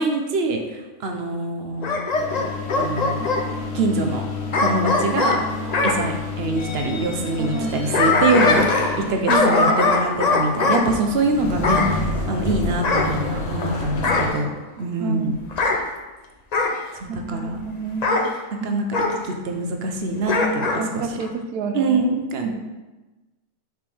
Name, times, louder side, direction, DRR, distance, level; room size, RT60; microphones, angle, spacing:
voice 1, 0.0-2.0 2.8-3.3 3.7-4.2 4.6-5.4 5.8-8.6 9.0-14.5 14.8-15.4 17.0-17.7 18.6-18.9 19.2-21.0 21.7-22.5, right 2 dB, 55° right, 4 dB, 0.8 m, -24 dB
Bark / Growling, 1.8-3.5 4.5-6.0 7.6-9.0 9.3-10.8 11.6-11.9 12.8-13.6 14.0-14.4 15.5-15.8 16.5-16.8 18.0-18.3 18.9-19.2 20.2-20.8 21.2-21.3, left 3 dB, 70° left, 0.3 m, -21 dB
sound 1, 2.1-14.3, left 2 dB, 55° left, 0.9 m, -30 dB
voice 2, 7.4-7.8 8.5-8.7 9.0-9.8 15.0-15.4 17.1-18.3 18.6-18.9 20.8-22.1 22.4-22.5, right 4 dB, 85° right, 6 dB, 1.2 m, -29 dB
6.1 x 5.0 x 3.4 m, 1.1 s
omnidirectional pair, 1.6 m